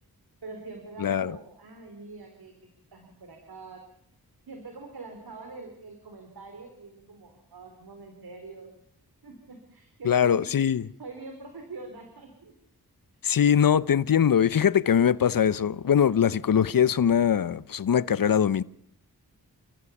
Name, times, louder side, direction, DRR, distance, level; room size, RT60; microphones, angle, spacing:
voice 1, 0.4-2.5 2.9-3.8 4.5-8.7 9.2-10.5 10.8-12.5, right 3 dB, 75° right, 4.0 m, -44 dB
voice 2, 1.0-1.4 10.0-10.9 13.2-18.6, left 8 dB, 65° left, 0.8 m, -22 dB
30.0 x 14.5 x 7.2 m
cardioid pair, 60°, 37 cm